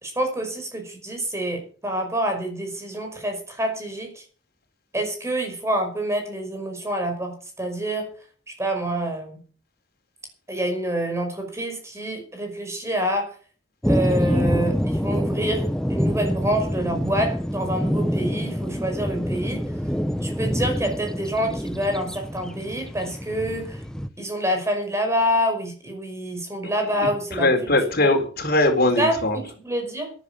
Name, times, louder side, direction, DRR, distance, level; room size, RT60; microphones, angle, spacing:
voice 1, 0.0-4.2 4.9-8.1 8.6-9.4 10.5-13.3 13.8-19.6 20.2-23.8 24.2-27.5 28.0-28.1 29.0-30.1, equal, 15° right, 4 dB, 5.6 m, -27 dB
sound 1, 13.8-24.1, equal, 5° left, 0.8 m, -26 dB
voice 2, 27.3-29.4, left 2 dB, 55° left, 5 dB, 4.1 m, -20 dB
13.0 x 11.5 x 7.1 m, 0.41 s
head